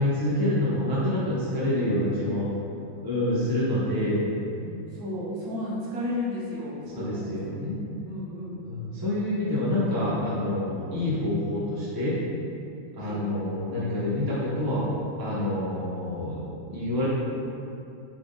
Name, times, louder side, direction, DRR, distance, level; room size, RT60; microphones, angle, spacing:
voice 1, 0.0-2.5 3.0-4.2 6.9-7.8 8.6-12.2 12.9-14.9 15.2-16.4 16.7-17.1, left 1 dB, 20° right, -8 dB, 0.6 m, -27 dB
voice 2, 4.6-7.6 8.0-8.6 13.0-13.2, left 1 dB, 85° right, -6 dB, 1.3 m, -33 dB
3.4 x 2.6 x 3.7 m, 2.5 s
omnidirectional pair, 1.6 m